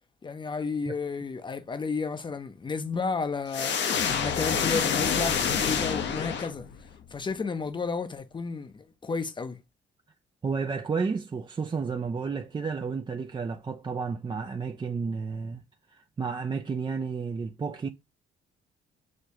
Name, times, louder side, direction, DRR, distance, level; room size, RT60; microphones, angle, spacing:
voice 1, 0.2-3.7 4.1-6.7 7.1-9.6, left 4 dB, 25° left, 0.6 m, -32 dB
sound 1, 3.5-6.9, left 7 dB, 65° left, 0.9 m, -27 dB
voice 2, 10.4-15.6 15.9-17.9, right 5 dB, 25° right, 0.4 m, -31 dB
6.3 x 2.3 x 2.8 m
cardioid pair, 90°, 20 cm